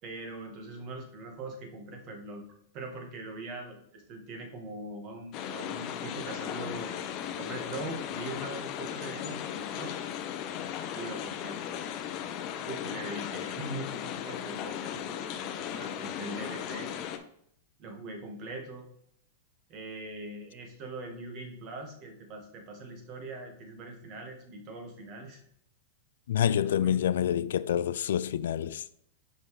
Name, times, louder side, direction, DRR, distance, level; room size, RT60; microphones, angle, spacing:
voice 1, 0.0-2.4 2.7-9.9 10.9-11.6 12.6-16.9 17.8-18.9 19.7-25.4 26.8-26.9, right 2 dB, 40° right, 1.5 m, -42 dB
sound 1, 5.3-17.2, left 9 dB, 40° left, 0.6 m, -37 dB
voice 2, 26.3-28.9, left 10 dB, 80° left, 0.3 m, -27 dB
5.5 x 5.5 x 3.2 m
hypercardioid pair, 135°, 0 cm